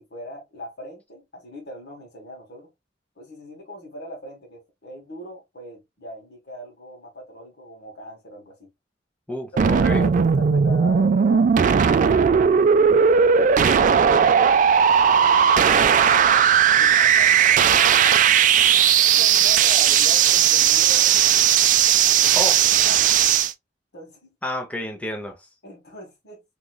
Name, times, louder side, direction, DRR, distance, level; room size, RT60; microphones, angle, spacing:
voice 1, 0.0-2.7 3.2-8.7 9.5-11.5 12.4-14.0 14.9-18.3 19.2-21.2 22.2-22.5 22.8-23.1 23.9-24.3 25.6-26.4, equal, 60° left, 1.5 m, -40 dB
voice 2, 9.3-10.0 22.3-22.6 24.4-25.5, equal, 5° left, 0.6 m, -30 dB
sound 1, 9.6-23.5, right 8 dB, 45° right, 0.3 m, -17 dB
3.8 x 2.9 x 2.2 m
head